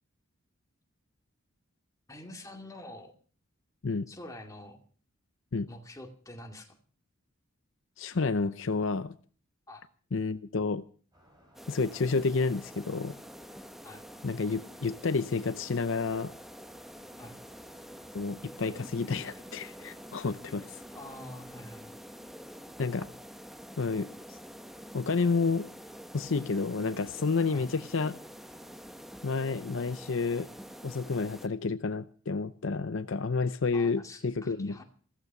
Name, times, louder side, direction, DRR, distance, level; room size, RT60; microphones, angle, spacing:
voice 1, 2.1-3.1 4.1-4.8 5.7-6.8 9.7-9.8 13.8-14.1 17.2-17.4 20.9-22.0 27.5-27.7 33.7-34.8, left 1 dB, 15° left, 2 dB, 2.3 m, -46 dB
voice 2, 8.0-9.1 10.1-10.8 11.7-13.1 14.2-16.3 18.1-20.8 22.8-23.1 23.8-24.4 24.9-25.7 26.1-28.2 29.2-30.5 30.8-34.8, left 4 dB, 65° left, 12 dB, 0.6 m, -30 dB
sound 1, 11.1-21.5, equal, 20° right, 5.7 m, -62 dB
sound 2, 11.5-31.5, equal, ahead, 0.8 m, -47 dB
15.0 x 14.5 x 5.9 m, 0.43 s
head